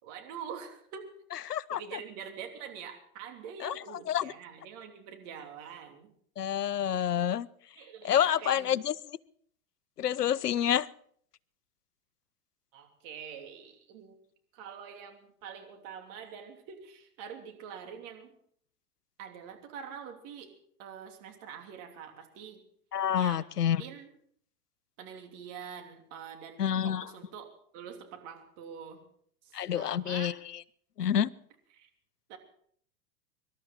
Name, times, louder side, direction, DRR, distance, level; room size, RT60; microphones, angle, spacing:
voice 1, 0.0-1.1 1.7-6.1 7.8-8.8 12.7-14.2 14.5-18.3 19.2-22.6 23.1-23.4 23.8-24.1 25.0-29.1 29.4-30.4 31.7-31.9 32.3-32.4, right 7 dB, 50° right, 3.1 m, -45 dB
voice 2, 1.3-1.8 3.6-4.3 6.4-7.5 8.0-9.2 10.0-10.9 22.9-23.8 26.6-27.1 29.5-30.6 31.0-31.3, left 9 dB, 90° left, 0.7 m, -28 dB
25.0 x 12.5 x 4.3 m
hypercardioid pair, 95°, 45 cm